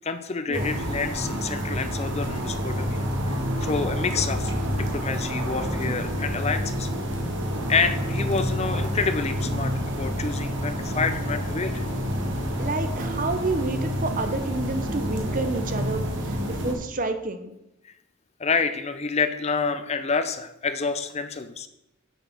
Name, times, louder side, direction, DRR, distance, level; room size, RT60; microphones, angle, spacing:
voice 1, 0.0-3.1 3.6-6.9 7.7-11.9 17.8-17.9 18.4-21.7, left 5 dB, 30° left, 10 dB, 0.6 m, -28 dB
sound 1, 0.5-16.7, equal, 60° right, 1.6 m, -28 dB
voice 2, 12.6-17.5, right 3 dB, 40° right, 8 dB, 0.8 m, -29 dB
8.1 x 6.5 x 6.1 m, 0.87 s
head